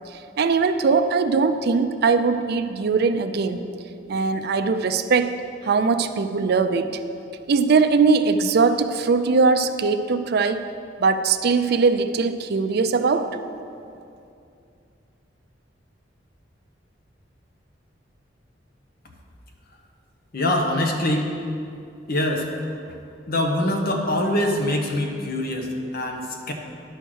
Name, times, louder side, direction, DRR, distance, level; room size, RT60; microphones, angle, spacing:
voice 1, 0.4-3.7 4.1-7.0 7.5-10.6 11.0-13.4, right 4 dB, 60° right, 10 dB, 0.4 m, -21 dB
voice 2, 20.3-21.3 22.1-22.5 22.9-23.0 23.3-26.5, left 1 dB, 55° left, 2 dB, 1.0 m, -24 dB
11.0 x 4.5 x 6.2 m, 2.6 s
head